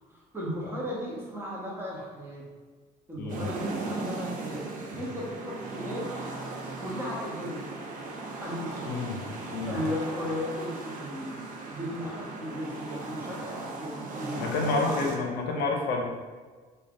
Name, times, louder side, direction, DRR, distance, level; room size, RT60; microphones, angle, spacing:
voice 1, 0.1-2.4 3.1-6.0 6.8-7.6 8.4-9.0 9.7-11.4 11.7-15.0, left 1 dB, 15° right, -4 dB, 0.8 m, -36 dB
voice 2, 3.2-3.5 4.9-5.0 8.9-9.2 9.5-9.8 14.4-16.0, left 3 dB, 75° left, 1 dB, 0.6 m, -29 dB
sound 1, 3.3-15.2, right 3 dB, 55° right, 0.4 m, -37 dB
3.1 x 2.2 x 2.5 m, 1.4 s
cardioid pair, 115°, 16 cm